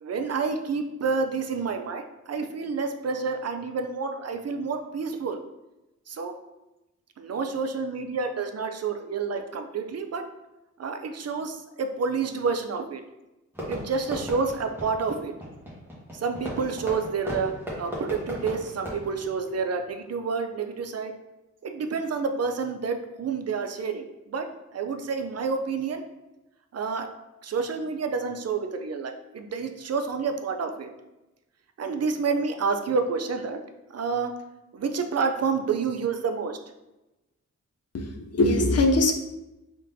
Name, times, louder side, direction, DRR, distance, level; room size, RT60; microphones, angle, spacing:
voice 1, 0.0-5.4 6.1-6.3 7.2-10.2 10.8-13.0 13.7-15.3 16.1-21.1 21.6-24.5 24.7-26.0 26.7-27.1 27.4-30.9 31.8-33.6 33.9-34.3 34.7-36.6, right 5 dB, 55° right, 6 dB, 0.5 m, -29 dB
Fireworks, 13.5-20.1, equal, 5° right, 1.5 m, -37 dB
voice 2, 37.9-39.1, left 2 dB, 55° left, 3 dB, 0.6 m, -21 dB
5.1 x 3.7 x 2.7 m, 0.98 s
wide cardioid pair, 110°, 30 cm